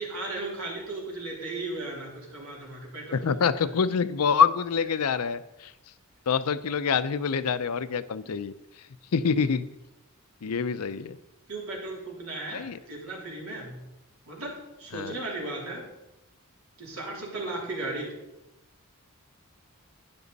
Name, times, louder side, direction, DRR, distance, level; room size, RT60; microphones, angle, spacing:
voice 1, 0.0-3.2 3.6-3.7 11.5-13.8 14.3-15.9 16.8-18.2, right 2 dB, 75° right, -2 dB, 3.6 m, -36 dB
voice 2, 3.1-5.7 6.3-8.5 9.1-9.6 10.4-11.2 12.5-12.8 14.9-15.1, left 6 dB, 80° left, 14 dB, 0.5 m, -26 dB
12.5 x 9.6 x 4.1 m, 0.91 s
head